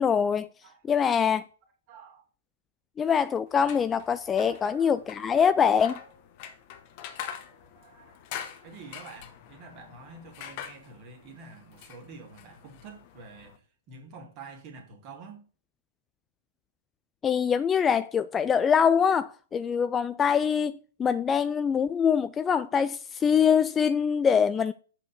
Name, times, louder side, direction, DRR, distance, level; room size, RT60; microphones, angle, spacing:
voice 1, 0.0-0.5 0.8-1.4 3.0-5.9 17.2-24.7, left 7 dB, 15° left, 0.3 m, -24 dB
voice 2, 0.6-1.1 1.9-2.2 4.3-5.0 5.3-6.0 7.5-8.2 8.6-13.6 13.9-15.5, right 4 dB, 35° right, 2.3 m, -48 dB
sound 1, 3.5-13.6, left 9 dB, 40° left, 1.0 m, -44 dB
7.7 x 4.3 x 6.7 m
figure-of-eight pair, 110°, 0 cm